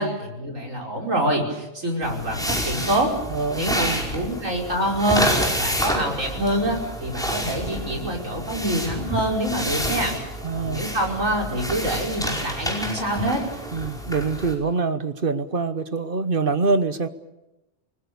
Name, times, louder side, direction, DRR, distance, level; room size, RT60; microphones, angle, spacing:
voice 1, 0.0-3.1 3.6-5.3 5.6-10.2 10.6-13.4, right 1 dB, 90° right, 0 dB, 5.7 m, -25 dB
sound 1, 2.0-14.5, equal, 5° left, 5.2 m, -29 dB
voice 2, 3.3-4.0 10.4-10.8 13.7-17.1, right 4 dB, 45° right, 11 dB, 1.3 m, -25 dB
28.5 x 20.0 x 7.0 m, 0.95 s
omnidirectional pair, 1.3 m